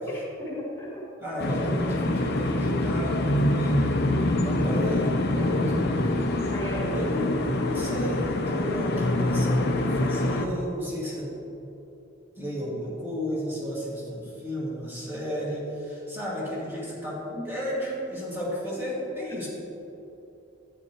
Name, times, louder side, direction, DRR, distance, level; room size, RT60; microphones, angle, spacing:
voice 1, 0.1-1.0 6.5-7.1 17.3-17.4 19.3-19.4, equal, 15° left, -7 dB, 1.8 m, -35 dB
voice 2, 1.2-6.5 6.9-7.4 7.6-11.4 12.4-19.5, equal, 10° right, -7 dB, 2.2 m, -33 dB
sound 1, 1.4-10.5, left 1 dB, 55° left, 0.6 m, -25 dB
11.0 x 9.2 x 3.1 m, 2.9 s
head